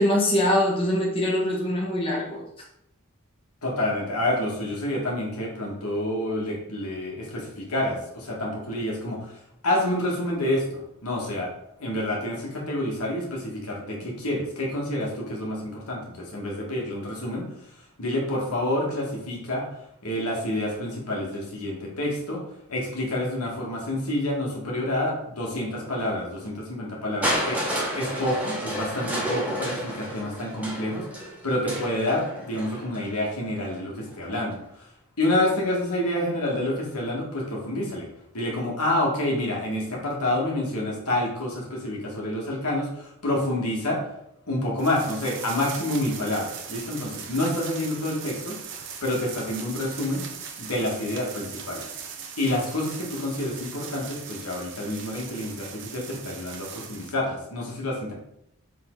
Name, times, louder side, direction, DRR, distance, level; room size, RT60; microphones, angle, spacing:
voice 1, 0.0-2.4, left 1 dB, 25° left, -4 dB, 1.6 m, -23 dB
voice 2, 3.6-11.5 11.8-19.7 20.0-22.4 22.7-34.9 35.2-38.1 38.3-44.0 44.5-50.2 50.6-51.9 52.4-58.1, left 1 dB, 85° left, -2 dB, 2.1 m, -28 dB
Crushing, 27.2-33.1 34.1-34.2, equal, 5° right, 1.5 m, -30 dB
sound 1, 44.8-57.2, right 7 dB, 55° right, 0.9 m, -39 dB
7.5 x 3.8 x 4.0 m, 0.78 s
head